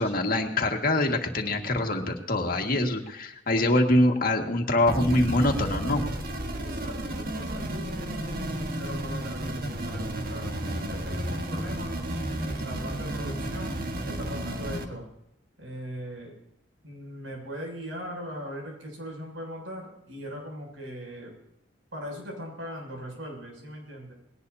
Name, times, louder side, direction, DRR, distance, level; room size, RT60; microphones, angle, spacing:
voice 1, 0.0-6.0, left 1 dB, 50° left, 2 dB, 2.0 m, -24 dB
sound 1, 4.9-14.9, right 1 dB, 50° right, 1.6 m, -32 dB
voice 2, 6.5-11.9 12.4-13.8 14.1-15.1 15.6-16.4 16.8-21.3 21.9-24.2, equal, 85° right, 0 dB, 7.3 m, -40 dB
20.5 x 18.0 x 2.8 m, 0.80 s
head